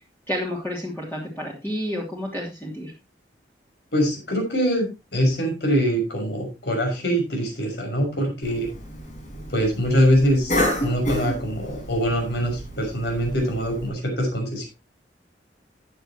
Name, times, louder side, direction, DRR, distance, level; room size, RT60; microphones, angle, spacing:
voice 1, 0.3-2.9, equal, 10° left, -3 dB, 2.9 m, -30 dB
voice 2, 3.9-8.7 9.5-14.7, equal, 65° left, 2 dB, 6.1 m, -23 dB
Cough, 8.4-13.9, left 1 dB, 45° left, 5.1 m, -30 dB
14.5 x 9.6 x 3.0 m, 0.25 s
head